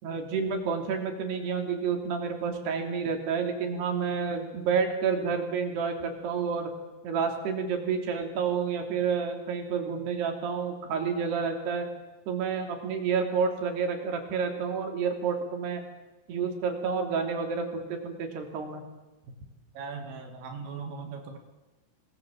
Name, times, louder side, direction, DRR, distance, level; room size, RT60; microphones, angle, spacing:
voice 1, 0.0-6.7 7.0-11.9 12.3-15.8 16.3-18.8, right 6 dB, 55° right, 5 dB, 4.9 m, -29 dB
voice 2, 19.8-21.4, right 5 dB, 75° right, 4 dB, 4.9 m, -39 dB
29.0 x 21.0 x 7.5 m, 1.2 s
omnidirectional pair, 5.9 m